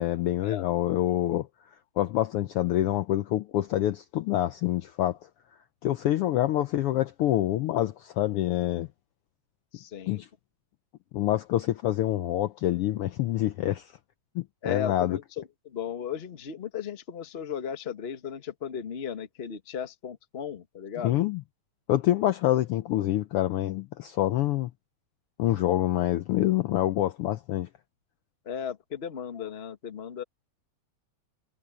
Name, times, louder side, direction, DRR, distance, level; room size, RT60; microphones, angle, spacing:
voice 1, 0.0-1.5 2.0-5.2 5.8-8.9 10.1-10.3 11.1-13.9 14.3-15.2 21.0-21.4 21.9-24.7 25.4-27.7, left 13 dB, 85° left, 1.2 m, -26 dB
voice 2, 9.7-10.2 14.6-21.2 28.4-30.2, left 8 dB, 40° left, 0.9 m, -36 dB
omnidirectional pair, 3.3 m